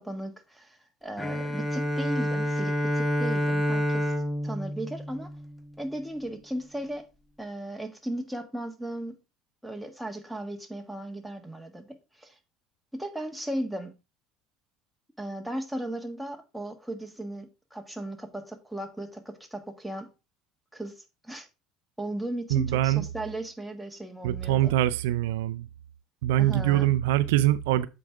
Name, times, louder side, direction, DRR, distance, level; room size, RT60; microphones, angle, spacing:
voice 1, 0.0-4.1 4.4-5.3 5.8-7.1 7.4-9.2 9.6-12.4 12.9-13.9 15.2-20.1 20.7-21.5 22.0-24.7 26.4-26.9, right 1 dB, ahead, 1.4 m, -36 dB
Bowed string instrument, 1.2-5.9, equal, 15° left, 0.9 m, -28 dB
voice 2, 22.5-23.1 24.2-25.7 26.2-27.9, right 13 dB, 85° right, 0.4 m, -23 dB
7.7 x 4.6 x 3.6 m
supercardioid pair, 95°, 0 cm